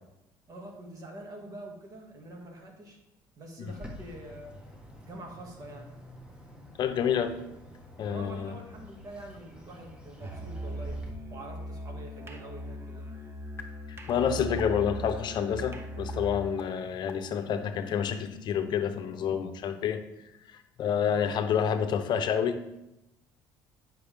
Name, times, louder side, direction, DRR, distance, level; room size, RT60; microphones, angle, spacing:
voice 1, 0.5-3.0 3.4-4.6 5.0-5.9 8.1-13.1 21.1-21.3, right 1 dB, 45° right, 1 dB, 2.0 m, -45 dB
Bird, 3.7-11.1, left 1 dB, 10° right, 1.4 m, -49 dB
voice 2, 6.8-7.4 8.0-8.5 13.9-20.0 20.5-22.6, left 8 dB, 55° left, 8 dB, 0.7 m, -28 dB
Musical instrument, 10.2-16.5, right 1 dB, 30° right, 0.9 m, -39 dB
sound 1, 13.6-13.7 14.1-14.2 14.6-14.7 15.1-15.2 15.6-15.7 16.1-16.2 16.6-16.7 17.1-17.2 17.6-19.3, left 7 dB, 25° left, 1.1 m, -45 dB
9.8 x 5.9 x 3.5 m, 0.91 s
cardioid pair, 110°, 9 cm